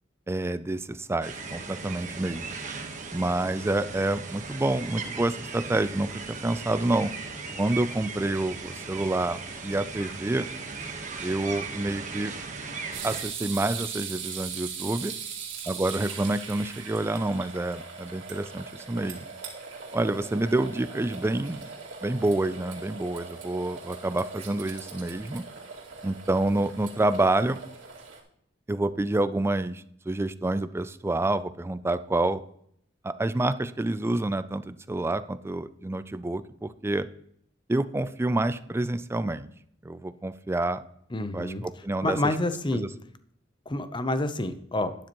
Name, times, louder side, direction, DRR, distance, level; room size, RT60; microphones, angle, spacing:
voice 1, 0.3-2.6 3.1-7.1 7.6-10.5 11.2-12.3 13.0-15.1 15.7-19.2 19.9-21.7 22.0-25.4 26.0-27.6 28.7-32.4 33.0-37.1 37.7-39.5 39.8-40.8 41.3-42.2 42.7-42.9, right 2 dB, 15° right, 13 dB, 0.4 m, -28 dB
sound 1, 1.2-13.2, right 4 dB, 40° right, 1.3 m, -38 dB
sound 2, 12.9-28.2, right 6 dB, 80° right, 2.3 m, -40 dB
voice 2, 41.1-41.6 42.0-42.8 43.7-44.9, left 1 dB, 25° left, 11 dB, 0.7 m, -28 dB
11.5 x 10.0 x 3.0 m, 0.67 s
head